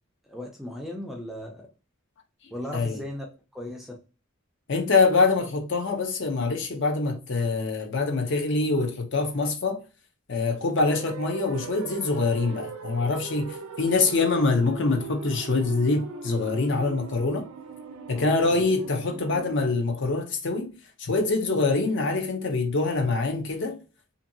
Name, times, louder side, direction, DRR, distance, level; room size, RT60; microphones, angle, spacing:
voice 1, 0.3-1.6 2.5-3.3 3.5-4.0 18.1-18.6, left 1 dB, ahead, 0.4 m, -37 dB
voice 2, 4.7-9.8 10.3-17.5 18.1-23.8, left 3 dB, 55° left, 0.6 m, -25 dB
sound 1, 10.9-19.7, right 5 dB, 80° right, 0.5 m, -40 dB
2.7 x 2.6 x 2.6 m
head